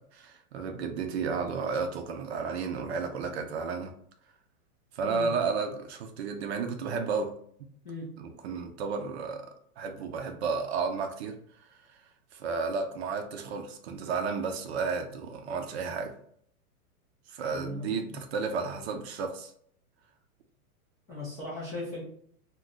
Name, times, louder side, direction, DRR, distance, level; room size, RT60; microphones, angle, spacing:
voice 1, 0.0-3.9 4.9-7.3 8.2-9.5 9.8-11.4 12.3-16.1 17.3-19.5, right 5 dB, 45° right, 5 dB, 0.5 m, -32 dB
voice 2, 17.5-17.9 21.1-22.0, left 2 dB, 15° left, -9 dB, 0.3 m, -37 dB
2.4 x 2.3 x 3.8 m, 0.64 s
hypercardioid pair, 140°, 45 cm